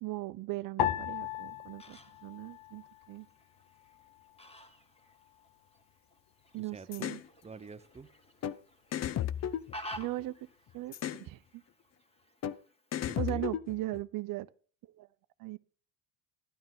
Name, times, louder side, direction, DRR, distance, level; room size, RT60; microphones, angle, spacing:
voice 1, 0.0-3.3 6.5-7.2 10.0-10.5 10.7-11.6 13.2-14.5 15.0-15.1 15.4-15.6, right 18 dB, 50° right, 0.7 m, -38 dB
sound 1, 0.8-3.3 3.6-4.5 5.1-5.5, left 10 dB, 55° left, 1.0 m, -37 dB
Fowl, 1.2-13.2, equal, 15° left, 1.9 m, -52 dB
voice 2, 6.5-7.1 7.4-8.1 13.1-13.4, right 4 dB, 15° right, 0.7 m, -47 dB
sound 2, 6.9-7.2 8.4-8.6 8.9-10.3 10.9-11.3 12.4-12.6 12.9-14.0, left 10 dB, 40° left, 0.6 m, -34 dB
12.0 x 10.0 x 3.7 m
hypercardioid pair, 65°, 43 cm